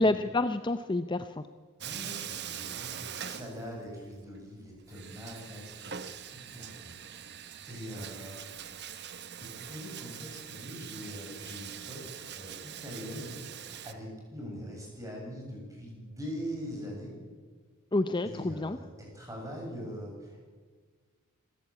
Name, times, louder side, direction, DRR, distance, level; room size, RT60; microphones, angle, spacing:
voice 1, 0.0-1.4 17.9-18.8, left 2 dB, 20° left, 10 dB, 0.6 m, -28 dB
voice 2, 1.8-6.8 7.6-8.4 9.4-17.1 18.2-20.4, equal, 15° right, -1 dB, 7.6 m, -42 dB
Bathtub (filling or washing), 1.8-4.1 4.4-4.5 4.9-13.9, right 9 dB, 50° right, 1.1 m, -43 dB
26.0 x 15.5 x 8.6 m, 1.5 s
head